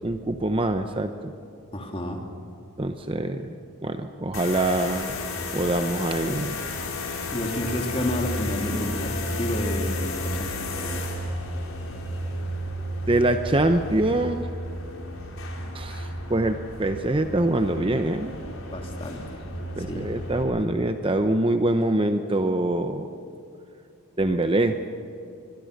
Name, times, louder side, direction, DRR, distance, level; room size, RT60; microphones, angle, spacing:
voice 1, 0.0-1.3 2.8-3.6 3.8-5.1 5.5-6.6 13.1-14.5 15.7-18.4 19.8-23.1 24.2-24.8, right 1 dB, 25° right, 7 dB, 0.8 m, -24 dB
voice 2, 1.7-2.2 7.3-11.0 18.7-20.2, left 1 dB, 25° left, 2 dB, 2.8 m, -31 dB
sound 1, 4.3-20.4, left 1 dB, 70° left, 3.9 m, -32 dB
24.5 x 23.0 x 6.7 m, 2.6 s
head